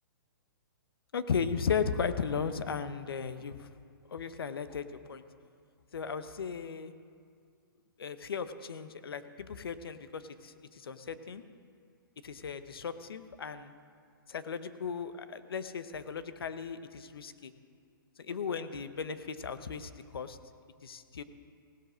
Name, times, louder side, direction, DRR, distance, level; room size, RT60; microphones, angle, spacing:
voice 1, 1.1-3.7 4.1-5.2 5.9-6.9 8.0-11.4 12.2-13.7 14.3-17.5 18.2-20.4 20.8-21.2, left 6 dB, 85° left, 11 dB, 0.8 m, -36 dB
16.5 x 8.0 x 6.2 m, 2.2 s
hypercardioid pair, 155°, 12 cm